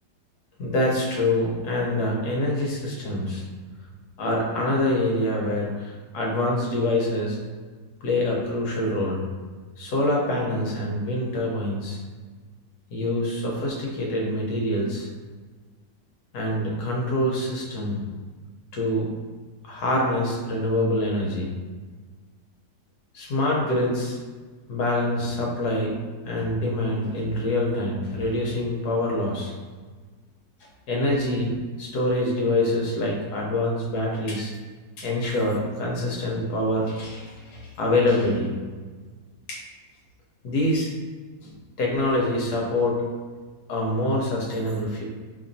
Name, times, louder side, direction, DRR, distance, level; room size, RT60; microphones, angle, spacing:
voice 1, 0.6-3.4 4.2-7.4 8.0-9.2 9.8-12.0 12.9-15.1 16.3-18.0 18.7-19.1 19.6-21.5 23.1-24.2 24.7-25.9 26.2-29.5 30.9-34.5 35.0-38.6 39.5-39.6 40.4-40.9 41.4-41.5 41.8-43.0 43.7-45.0, left 1 dB, 70° left, -2 dB, 1.3 m, -25 dB
4.2 x 2.9 x 2.7 m, 1.4 s
omnidirectional pair, 1.9 m